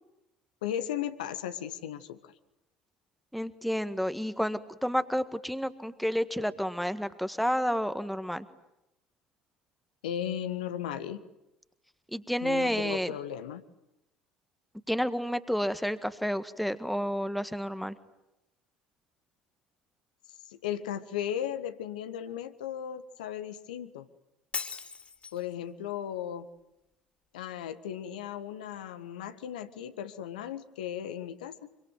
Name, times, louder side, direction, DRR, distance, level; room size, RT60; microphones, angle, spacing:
voice 1, 0.6-2.3 10.0-11.2 12.4-13.6 20.5-24.1 25.3-26.5 27.3-31.7, left 10 dB, 70° left, 10 dB, 1.6 m, -36 dB
voice 2, 3.3-8.4 12.1-13.1 14.9-17.9, equal, ahead, 12 dB, 1.7 m, -30 dB
Shatter, 24.5-25.5, left 5 dB, 25° left, 3.4 m, -38 dB
26.0 x 24.5 x 9.3 m, 0.90 s
figure-of-eight pair, 60°, 5 cm